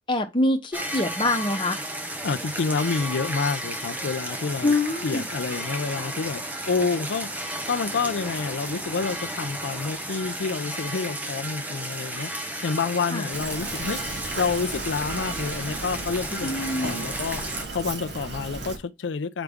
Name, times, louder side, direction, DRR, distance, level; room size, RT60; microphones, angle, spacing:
voice 1, 0.1-1.8 4.6-5.3 13.1-13.3 16.4-17.1, left 2 dB, 25° left, 1.1 m, -25 dB
sound 1, 0.7-17.6, right 1 dB, 10° right, 0.7 m, -33 dB
voice 2, 2.2-4.7 5.0-12.3 12.6-14.0 14.4-16.5 16.8-17.4 17.7-19.4, left 5 dB, 90° left, 0.5 m, -28 dB
Fill (with liquid), 13.3-18.8, right 2 dB, 70° right, 1.5 m, -35 dB
7.9 x 5.0 x 3.5 m
head